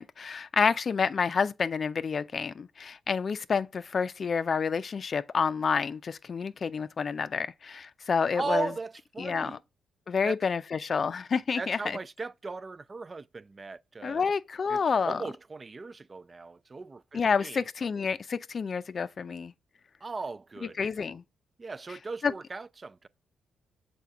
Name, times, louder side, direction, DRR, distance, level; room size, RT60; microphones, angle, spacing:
voice 1, 0.0-8.7 9.2-9.5 10.1-12.0 14.0-15.2 17.1-19.5 20.8-21.2 22.2-22.3, left 5 dB, 50° left, 0.4 m, -29 dB
voice 2, 8.3-9.6 10.2-10.4 11.5-14.3 14.7-18.0 20.0-20.8 21.6-23.1, right 3 dB, 35° right, 0.4 m, -38 dB
6.8 x 4.2 x 3.6 m
supercardioid pair, 55°, 0 cm